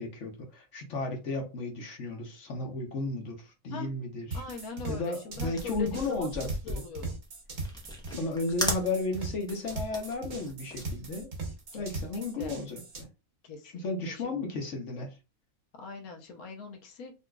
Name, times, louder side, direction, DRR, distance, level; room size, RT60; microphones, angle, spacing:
voice 1, 0.0-4.4 4.9-6.8 8.1-11.3 11.7-13.1 13.7-15.2, left 3 dB, 60° left, 1.1 m, -34 dB
voice 2, 4.3-7.2 11.7-12.6 13.4-14.3 15.7-17.1, left 4 dB, 85° left, 1.3 m, -42 dB
sound 1, 4.3-13.0, right 3 dB, 85° right, 1.6 m, -39 dB
sound 2, 5.6-12.0, left 1 dB, 5° left, 0.6 m, -38 dB
3.9 x 2.8 x 2.2 m
omnidirectional pair, 1.5 m